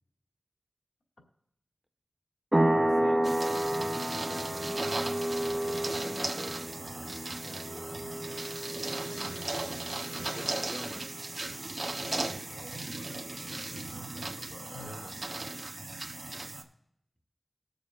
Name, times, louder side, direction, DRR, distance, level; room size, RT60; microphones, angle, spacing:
sound 1, 2.5-10.9, right 1 dB, 20° right, 0.6 m, -31 dB
voice 1, 2.6-8.0 9.1-11.2 12.3-12.5 14.7-15.1, equal, 5° left, 4 dB, 1.6 m, -47 dB
sound 2, 3.2-16.6, right 2 dB, 50° right, 1.1 m, -37 dB
voice 2, 8.9-10.5 11.9-15.0, left 3 dB, 75° left, 0 dB, 2.2 m, -52 dB
20.5 x 6.9 x 2.6 m, 0.74 s
cardioid pair, 45°, 0 cm